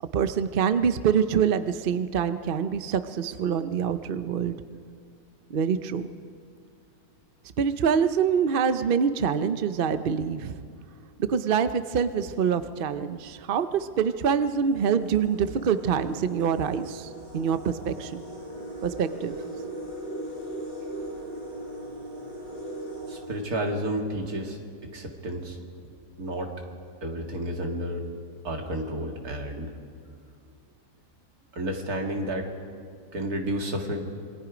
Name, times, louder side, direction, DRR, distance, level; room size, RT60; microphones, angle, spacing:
voice 1, 0.0-4.6 5.5-6.1 7.6-10.7 11.2-18.2 18.8-19.4, right 7 dB, 50° right, 11 dB, 0.7 m, -25 dB
sound 1, 12.9-13.0 13.8-13.9 14.3-24.1, right 1 dB, 55° left, 8.1 m, -39 dB
voice 2, 23.1-24.6 24.9-25.6 26.2-26.5 27.0-28.0 28.4-29.7 31.5-32.5 33.1-34.1, right 1 dB, 70° right, 2 dB, 2.7 m, -31 dB
27.0 x 22.5 x 5.1 m, 2.3 s
omnidirectional pair, 1.7 m